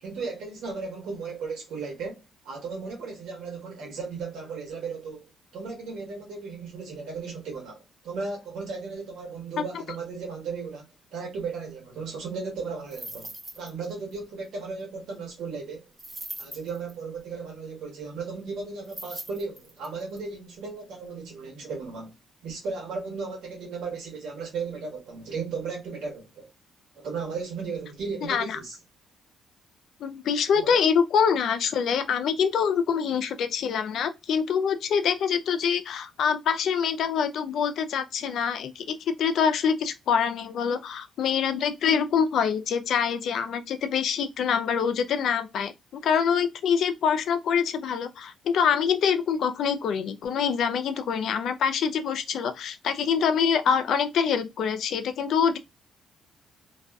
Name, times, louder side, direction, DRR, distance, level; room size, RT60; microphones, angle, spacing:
voice 1, 0.0-2.2 2.4-10.9 11.1-15.8 16.4-22.1 22.4-26.5 27.0-28.8 30.5-30.8, right 4 dB, 80° right, 1.1 m, -35 dB
sound 1, 12.9-13.8 14.1-14.2 16.0-16.9 18.8-20.2, right 2 dB, 20° right, 0.9 m, -40 dB
voice 2, 28.3-28.6 30.0-55.6, left 7 dB, 70° left, 0.4 m, -25 dB
2.4 x 2.3 x 2.2 m
cardioid pair, 90°, 0 cm